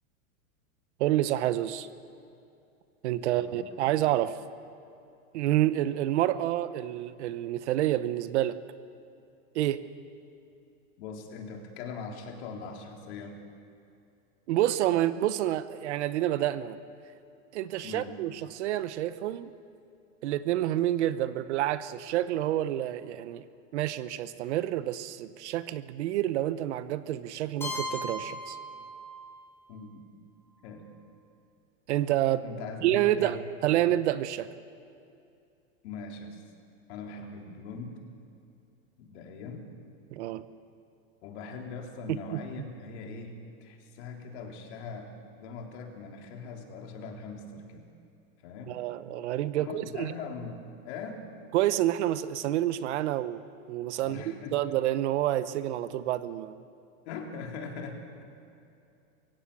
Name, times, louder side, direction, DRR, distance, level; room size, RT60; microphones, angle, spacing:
voice 1, 1.0-1.9 3.0-4.4 5.3-8.6 9.5-9.8 14.5-16.8 17.5-19.5 20.2-23.4 23.7-28.6 31.9-32.4 32.8-33.4 33.6-34.5 40.1-40.4 42.1-42.4 48.7-50.1 51.5-53.4 53.7-54.2 54.5-56.6, right 13 dB, 55° right, 14 dB, 1.0 m, -28 dB
voice 2, 3.2-3.6 11.0-13.4 17.8-18.2 29.7-30.0 30.6-30.8 32.4-33.4 35.8-36.4 36.9-38.0 39.0-39.7 41.2-45.1 45.4-47.9 48.4-48.8 49.6-51.2 54.0-54.6 57.1-58.2, left 4 dB, 50° left, 1 dB, 3.7 m, -41 dB
Keyboard (musical), 27.6-29.5, left 1 dB, 5° left, 6.2 m, -37 dB
24.0 x 16.0 x 8.5 m, 2.6 s
supercardioid pair, 155°, 42 cm